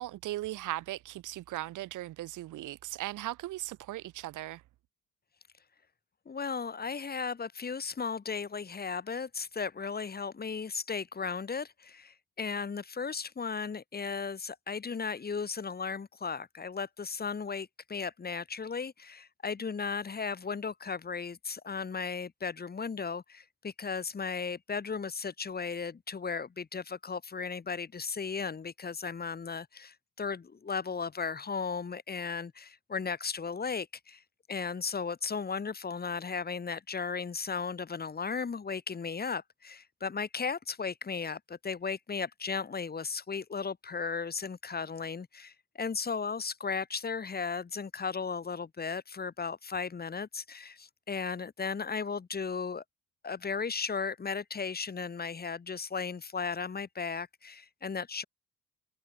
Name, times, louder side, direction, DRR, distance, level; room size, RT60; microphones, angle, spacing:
voice 1, 0.0-4.6, right 15 dB, 85° right, 1.4 m, -38 dB
voice 2, 6.3-34.2 34.5-52.8 53.2-58.2, left 5 dB, 30° left, 1.8 m, -36 dB
open air
cardioid pair, 90°, 30 cm